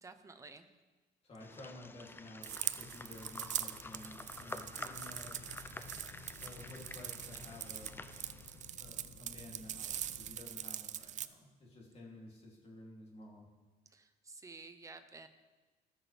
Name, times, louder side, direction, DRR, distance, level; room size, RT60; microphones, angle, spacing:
voice 1, 0.0-0.7 13.9-15.3, right 3 dB, 20° right, 8 dB, 0.8 m, -52 dB
voice 2, 1.2-5.4 6.4-8.0 8.8-13.5, left 1 dB, 35° left, -3 dB, 3.0 m, -53 dB
sound 1, 1.4-8.7, left 2 dB, 15° left, 0.5 m, -50 dB
sound 2, 2.4-11.3, right 11 dB, 45° right, 0.4 m, -43 dB
sound 3, 2.5-10.4, left 4 dB, 55° left, 1.7 m, -56 dB
18.0 x 6.2 x 3.4 m, 1.3 s
cardioid pair, 110°, 17 cm